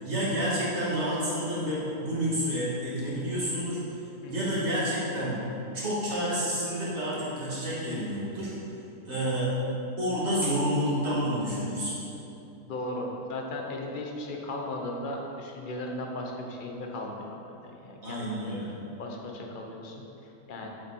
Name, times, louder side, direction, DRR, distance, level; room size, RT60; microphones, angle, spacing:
voice 1, 0.0-4.0 4.3-5.4 5.7-8.5 9.0-9.5 10.0-12.0 18.0-18.7, equal, 45° right, -8 dB, 2.5 m, -29 dB
voice 2, 12.6-17.4 17.6-18.6 19.0-20.7, left 1 dB, 40° left, 0 dB, 1.0 m, -37 dB
7.7 x 7.4 x 4.3 m, 2.9 s
omnidirectional pair, 1.6 m